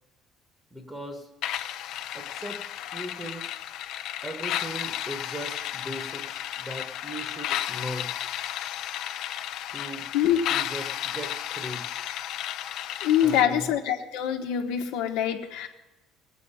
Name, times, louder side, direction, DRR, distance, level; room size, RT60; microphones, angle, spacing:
voice 1, 0.7-1.3 2.1-3.5 4.2-8.1 9.7-10.1 10.5-11.9 13.2-13.7, equal, 10° right, 6 dB, 1.0 m, -38 dB
sound 1, 1.4-13.4, left 11 dB, 55° left, 0.5 m, -33 dB
voice 2, 13.0-15.7, left 10 dB, 90° left, 5 dB, 1.2 m, -24 dB
19.5 x 8.3 x 5.5 m, 1.0 s
cardioid pair, 170°, 0 cm